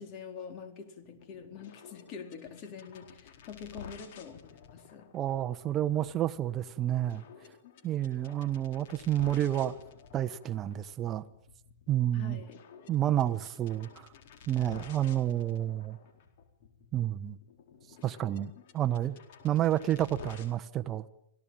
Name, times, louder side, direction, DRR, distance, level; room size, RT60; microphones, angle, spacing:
voice 1, 0.0-5.1 12.1-12.6, left 6 dB, 35° left, 4.2 m, -45 dB
sound 1, 1.0-20.5, left 6 dB, 50° left, 4.2 m, -52 dB
voice 2, 5.1-7.2 7.8-9.8 10.1-11.2 11.9-12.4 12.9-14.1 14.5-16.0 16.9-17.4 18.0-19.2 19.4-21.1, right 12 dB, 20° right, 1.1 m, -30 dB
27.0 x 17.5 x 9.1 m
hypercardioid pair, 155°, 0 cm